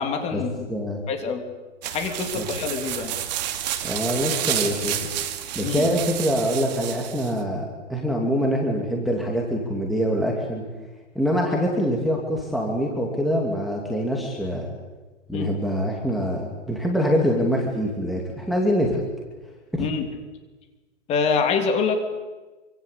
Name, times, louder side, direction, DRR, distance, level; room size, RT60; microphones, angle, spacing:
voice 1, 0.0-0.5 1.1-1.4 1.9-3.1 5.6-5.9 15.3-15.5 19.8-20.1 21.1-22.0, left 5 dB, 15° left, 5 dB, 3.1 m, -25 dB
voice 2, 0.7-1.0 2.4-2.5 3.8-5.1 5.5-10.6 11.1-14.7 15.3-19.0 19.7-19.9, equal, ahead, -1 dB, 2.6 m, -24 dB
sound 1, 1.8-7.4, right 11 dB, 35° right, 2.5 m, -30 dB
27.5 x 25.5 x 8.4 m, 1.2 s
hypercardioid pair, 160°, 38 cm